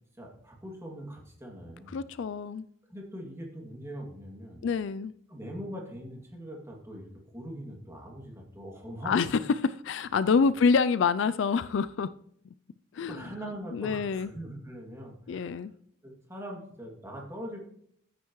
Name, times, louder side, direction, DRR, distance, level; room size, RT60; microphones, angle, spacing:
voice 1, 0.2-2.0 2.9-4.7 5.3-9.4 13.1-15.5 16.0-17.6, equal, 15° right, -1 dB, 2.4 m, -42 dB
voice 2, 1.9-2.6 4.6-5.1 9.1-12.1 12.9-13.2 13.7-14.3 15.3-15.7, left 5 dB, 65° left, 15 dB, 0.4 m, -26 dB
14.0 x 9.1 x 3.1 m, 0.67 s
head